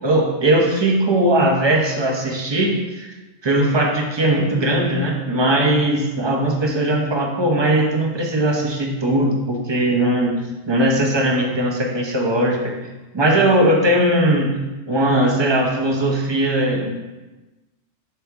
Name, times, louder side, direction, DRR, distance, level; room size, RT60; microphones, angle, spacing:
voice 1, 0.0-3.1 3.4-10.4 10.7-12.7 13.1-14.5 14.9-17.0, right 1 dB, 25° right, 0 dB, 0.7 m, -19 dB
6.3 x 4.4 x 3.4 m, 1.1 s
omnidirectional pair, 1.3 m